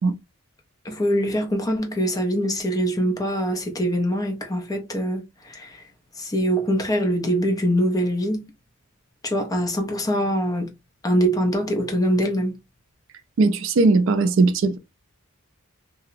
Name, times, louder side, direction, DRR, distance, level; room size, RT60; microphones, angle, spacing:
voice 1, 0.8-5.9 6.2-8.4 9.2-10.7 11.0-12.6, equal, 15° left, 0.4 m, -23 dB
voice 2, 13.4-14.8, right 3 dB, 60° right, 0.4 m, -18 dB
2.7 x 2.0 x 2.4 m
head